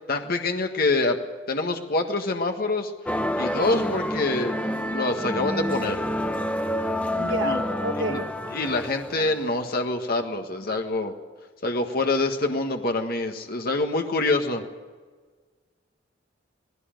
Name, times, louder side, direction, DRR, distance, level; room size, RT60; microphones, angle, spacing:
voice 1, 0.1-1.2 1.5-2.9 3.4-6.0 7.4-7.6 8.0-8.2 8.5-11.1 11.6-14.6, left 2 dB, 50° left, 4 dB, 1.6 m, -26 dB
sound 1, 3.1-9.6, left 1 dB, 5° left, 1.0 m, -28 dB
voice 2, 7.2-8.3, right 1 dB, 75° right, 5 dB, 1.7 m, -30 dB
19.0 x 16.5 x 9.1 m, 1.4 s
head